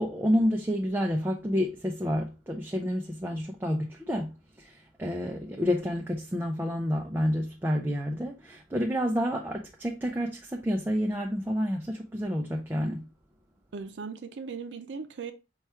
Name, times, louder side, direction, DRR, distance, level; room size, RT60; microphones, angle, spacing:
voice 1, 0.0-13.0, equal, 10° right, 0.4 m, -29 dB
voice 2, 13.7-15.3, right 5 dB, 90° right, 0.4 m, -38 dB
4.6 x 2.3 x 4.2 m
head